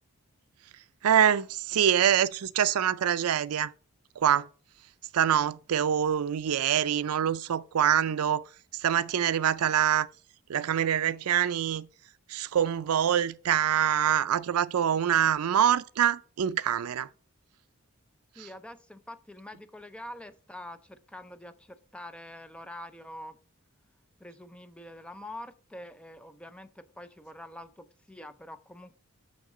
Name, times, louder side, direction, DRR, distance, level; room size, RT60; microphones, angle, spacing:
voice 1, 1.0-3.7 4.2-4.5 5.1-10.1 10.5-11.9 12.3-17.1 18.4-18.5, right 9 dB, 80° right, 0.4 m, -25 dB
voice 2, 18.4-23.4 24.2-28.9, left 1 dB, 5° left, 0.4 m, -45 dB
6.4 x 6.2 x 3.7 m
head